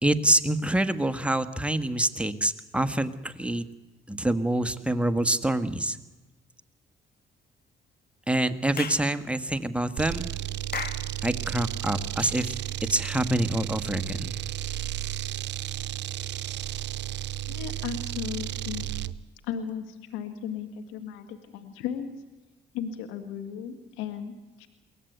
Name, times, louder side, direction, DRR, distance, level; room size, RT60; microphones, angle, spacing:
voice 1, 0.0-3.7 4.1-6.0 8.3-10.3 11.2-12.5 12.9-14.4, right 1 dB, 5° right, 10 dB, 1.7 m, -26 dB
Clapping / Chirp tweet, 8.8-9.1 10.7-11.1, left 6 dB, 50° left, 2.1 m, -34 dB
sound 1, 10.0-19.2, right 13 dB, 65° right, 0.7 m, -33 dB
voice 2, 17.5-18.9 19.4-22.1 22.7-24.3 24.6-24.7, left 8 dB, 85° left, 7 dB, 1.6 m, -35 dB
23.0 x 17.5 x 8.1 m, 1.1 s
supercardioid pair, 55°, 20 cm